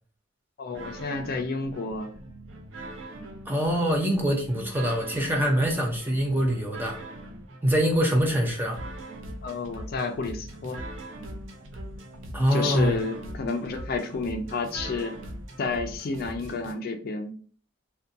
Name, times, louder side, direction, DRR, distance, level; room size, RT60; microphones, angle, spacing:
voice 1, 0.6-2.1 9.4-10.8 12.5-15.1 15.6-17.3, left 4 dB, 50° left, 5 dB, 0.4 m, -30 dB
sound 1, 0.7-16.7, right 1 dB, 85° right, 0.5 m, -41 dB
voice 2, 3.5-7.0 7.6-8.8 12.3-13.0, equal, 10° right, 0 dB, 0.5 m, -24 dB
2.5 x 2.2 x 2.6 m, 0.44 s
head